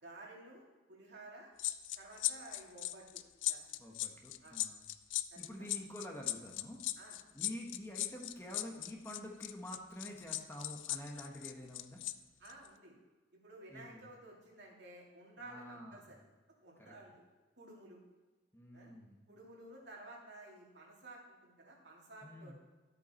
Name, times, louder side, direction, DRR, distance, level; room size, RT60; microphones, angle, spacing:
voice 1, 0.0-1.5 2.0-3.2 3.5-3.6 4.4-4.6 5.3-5.7 7.0-7.2 12.4-12.9 13.3-16.2 16.6-17.2 17.6-18.0 18.7-18.9 19.3-22.6, right 2 dB, 65° right, -3 dB, 2.9 m, -54 dB
sound 1, 1.6-12.1 12.4-12.7, left 15 dB, 80° left, 0.5 m, -38 dB
voice 2, 3.8-4.8 5.4-6.8 7.3-12.0 13.7-14.1 15.4-16.2 16.8-16.9 18.5-19.3 22.2-22.6, left 1 dB, 15° left, 0 dB, 1.3 m, -48 dB
13.0 x 8.1 x 4.5 m, 1.3 s
head